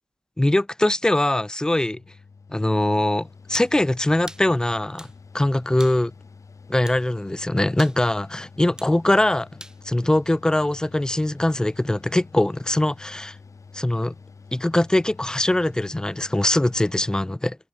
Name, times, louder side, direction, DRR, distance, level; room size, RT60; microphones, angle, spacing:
voice 1, 0.4-2.0 2.5-5.1 5.3-6.1 6.7-9.5 9.8-13.4 13.7-14.1 14.5-17.6, left 1 dB, 15° left, 0.5 m, -22 dB
Mechanical fan, 1.8-17.2, left 4 dB, 90° left, 5.0 m, -47 dB
sound 1, 3.5-3.7 4.3-4.5 5.0-5.2 5.8-6.0 6.9-7.0 7.8-8.0 8.8-9.0 9.6-9.8, right 1 dB, 15° right, 4.4 m, -41 dB
wide cardioid pair, 90°, 5 cm